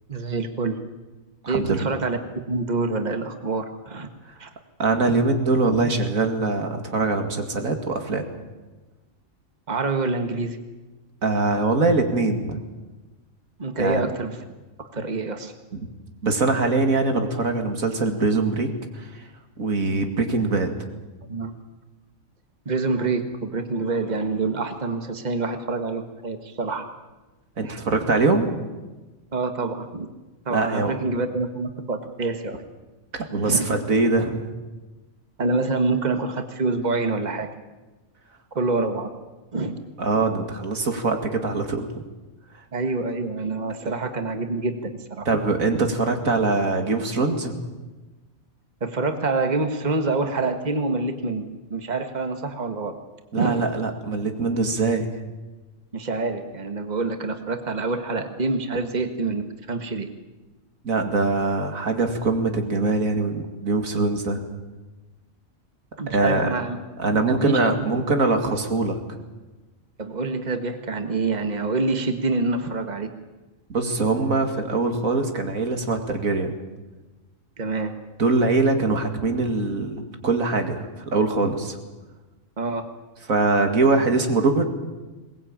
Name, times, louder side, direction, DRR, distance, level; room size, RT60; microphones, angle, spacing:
voice 1, 0.1-0.8 1.5-2.2 2.5-4.1 4.4-4.5 9.7-10.6 13.6-14.4 14.9-15.5 21.3-21.5 22.6-26.8 27.6-27.8 29.3-30.1 30.4-32.6 33.4-33.8 35.4-37.5 38.5-39.1 39.5-39.7 42.7-45.3 48.8-53.0 53.3-53.6 55.9-60.1 66.0-66.8 67.2-68.1 70.0-73.1 77.6-77.9 82.6-82.9, right 3 dB, 35° right, 7 dB, 1.7 m, -26 dB
voice 2, 1.4-1.9 4.8-8.2 11.2-12.6 13.8-14.1 15.7-15.8 16.2-19.2 19.6-20.7 27.6-28.5 30.5-30.9 33.1-34.5 40.0-41.9 45.3-47.5 53.3-55.1 60.8-64.4 66.1-66.5 67.0-69.2 73.7-76.6 78.2-81.8 83.3-84.6, right 3 dB, 85° right, 5 dB, 2.7 m, -23 dB
21.5 x 20.0 x 8.9 m, 1.2 s
omnidirectional pair, 1.4 m